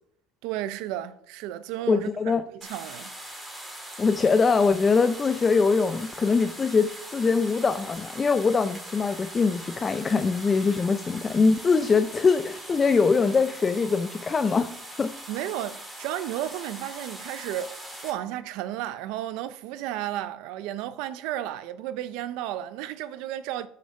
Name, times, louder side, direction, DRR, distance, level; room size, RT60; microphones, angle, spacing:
voice 1, 0.4-3.1 15.3-23.7, right 12 dB, 70° right, 0.5 m, -33 dB
voice 2, 1.9-2.4 4.0-14.7 15.0-15.1, left 4 dB, 20° left, 0.4 m, -23 dB
sound 1, 2.6-18.1, right 1 dB, 5° right, 2.5 m, -41 dB
7.8 x 6.6 x 5.3 m
cardioid pair, 145°, 0 cm